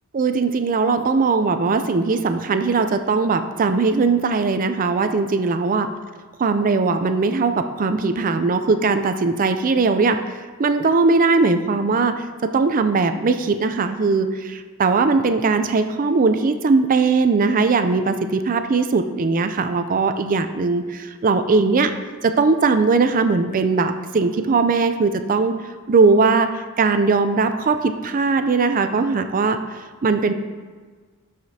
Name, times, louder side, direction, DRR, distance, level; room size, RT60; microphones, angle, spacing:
voice 1, 0.1-5.9 6.4-21.9 22.2-25.6 25.9-30.3, right 4 dB, 40° right, 9 dB, 0.4 m, -19 dB
12.0 x 4.9 x 2.8 m, 1.4 s
head